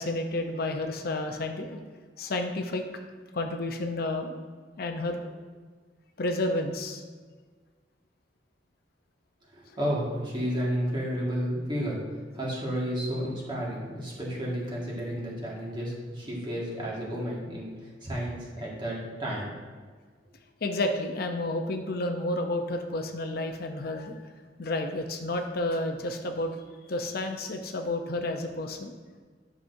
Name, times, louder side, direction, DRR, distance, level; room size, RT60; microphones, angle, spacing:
voice 1, 0.0-1.8 2.2-2.8 3.3-4.4 4.8-5.2 6.2-7.0 20.6-24.3 24.6-26.6 26.9-28.9, left 2 dB, 55° left, 5 dB, 0.6 m, -31 dB
voice 2, 9.5-12.0 12.3-19.5, equal, 25° right, -4 dB, 1.7 m, -32 dB
10.0 x 5.9 x 2.7 m, 1.5 s
head